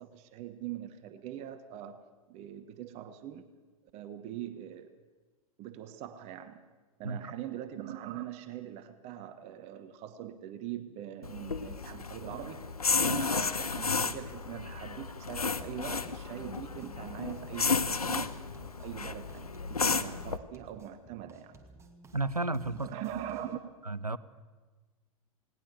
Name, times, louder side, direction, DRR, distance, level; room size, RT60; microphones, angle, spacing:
voice 1, 0.0-3.5 3.9-4.9 5.6-6.6 7.0-12.7 12.9-21.6 22.7-23.6, right 11 dB, 35° right, 10 dB, 1.2 m, -42 dB
sound 1, 11.2-20.4, left 5 dB, 80° left, 0.9 m, -33 dB
sound 2, 15.5-23.5, right 2 dB, 15° right, 2.3 m, -56 dB
voice 2, 22.1-22.9 23.8-24.2, right 2 dB, 90° right, 17 dB, 0.8 m, -32 dB
19.5 x 18.0 x 7.8 m, 1.3 s
figure-of-eight pair, 95°, 19 cm